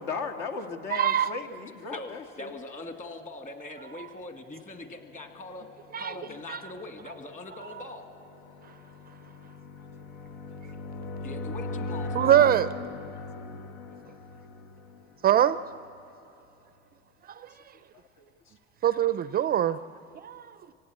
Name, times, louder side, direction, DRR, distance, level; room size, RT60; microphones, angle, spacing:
voice 1, 0.0-2.5 6.2-6.4 18.2-18.3 20.1-20.2, left 5 dB, 70° left, 4 dB, 2.1 m, -36 dB
voice 2, 0.9-1.3 5.9-6.1 6.5-6.6 12.1-12.7 15.2-15.6 17.3-17.4 18.8-19.8 20.2-20.4, right 10 dB, 30° right, 14 dB, 0.4 m, -22 dB
voice 3, 1.9-5.7 6.0-8.1 11.2-12.3, left 2 dB, 25° left, 5 dB, 2.1 m, -42 dB
sound 1, 5.0-15.8, left 2 dB, 85° left, 1.4 m, -39 dB
25.5 x 17.5 x 8.6 m, 2.9 s
supercardioid pair, 120°, 31 cm